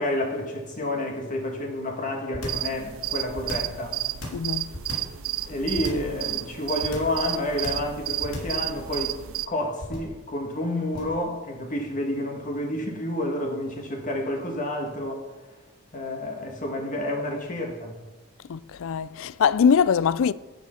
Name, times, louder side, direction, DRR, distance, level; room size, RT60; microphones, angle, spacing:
voice 1, 0.0-4.0 5.5-9.1 9.5-15.3 15.9-18.0, left 1 dB, 40° left, 1.5 m, -29 dB
sound 1, 2.3-2.7 3.3-3.8 4.2-5.2 5.7-6.1 6.8-7.2 7.6-7.9 8.2-8.6 9.8-10.2 10.9-11.2, left 1 dB, 85° left, 3.2 m, -35 dB
sound 2, 2.4-9.5, right 13 dB, 65° right, 0.5 m, -32 dB
voice 2, 4.3-4.7 18.5-20.3, left 6 dB, 65° left, 0.4 m, -22 dB
10.5 x 9.0 x 5.7 m
head